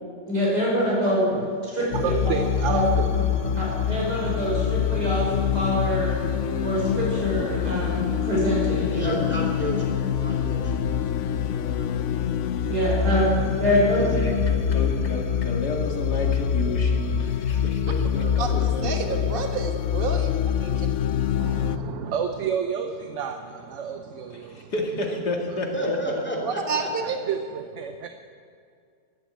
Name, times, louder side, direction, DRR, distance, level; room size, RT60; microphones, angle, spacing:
voice 1, 0.3-1.3 1.7-2.1 2.7-2.8 3.5-6.1 6.6-9.1 12.7-13.2 13.6-14.0, equal, 80° right, -5 dB, 6.1 m, -25 dB
sound 1, 1.9-21.8, left 8 dB, 60° left, 0.9 m, -25 dB
voice 2, 1.9-4.4 21.4-24.7 25.5-25.7 27.0-28.1, right 7 dB, 55° right, 6 dB, 1.0 m, -31 dB
voice 3, 8.9-10.7 11.5-12.1 13.9-14.0 14.3-14.7 18.1-18.7 25.7-27.2, equal, 5° left, 0 dB, 2.5 m, -33 dB
voice 4, 14.1-19.2 24.5-26.2, left 2 dB, 85° left, 1 dB, 2.6 m, -31 dB
voice 5, 18.4-20.9 26.4-27.2, right 4 dB, 35° right, 5 dB, 1.5 m, -29 dB
13.5 x 11.0 x 8.6 m, 2.2 s
omnidirectional pair, 1.7 m